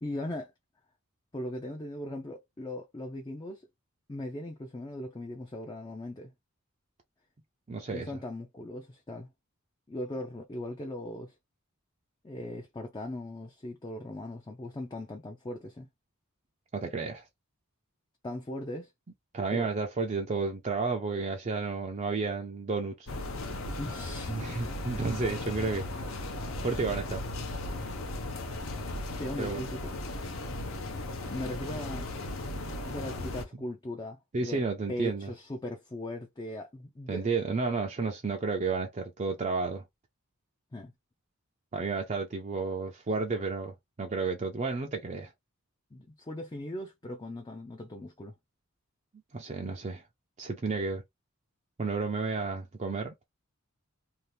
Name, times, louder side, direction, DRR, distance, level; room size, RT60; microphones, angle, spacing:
voice 1, 0.0-0.5 1.3-3.7 4.1-6.3 7.9-9.3 9.9-11.3 12.2-15.9 18.2-18.9 19.5-19.7 23.8-24.7 29.2-29.9 31.3-32.1 32.9-34.6 34.9-37.3 40.7-40.9 45.9-48.3, left 1 dB, 20° left, 0.5 m, -39 dB
voice 2, 7.7-8.1 16.7-17.2 19.3-23.1 24.3-26.1 26.6-27.2 29.4-29.6 34.3-35.3 37.1-39.8 41.7-45.3 49.3-50.0 50.4-51.0 51.8-53.1, right 4 dB, 35° right, 0.5 m, -32 dB
sound 1, 23.1-33.4, left 2 dB, 70° left, 0.7 m, -36 dB
2.8 x 2.4 x 3.2 m
head